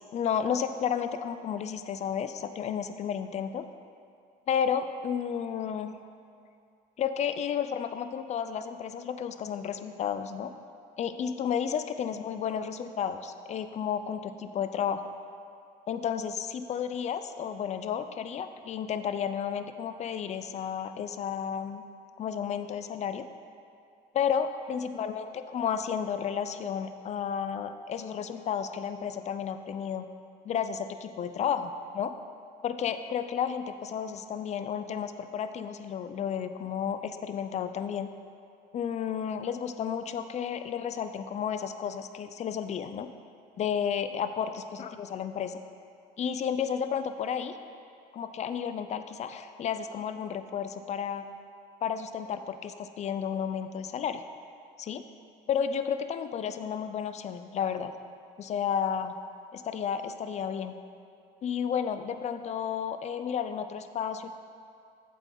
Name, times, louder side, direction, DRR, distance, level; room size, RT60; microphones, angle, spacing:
voice 1, 0.0-3.7 4.5-5.9 7.0-10.5 11.0-15.1 15.9-21.8 22.2-23.3 24.1-30.0 30.4-32.1 32.6-38.1 38.7-43.1 43.6-45.6 46.2-47.6 48.1-51.3 51.8-54.2 54.8-55.0 55.5-57.9 58.4-59.2 59.5-60.8 61.4-64.3, left 8 dB, 40° left, 10 dB, 0.4 m, -32 dB
8.1 x 7.7 x 3.9 m, 2.4 s
cardioid pair, 110°, 17 cm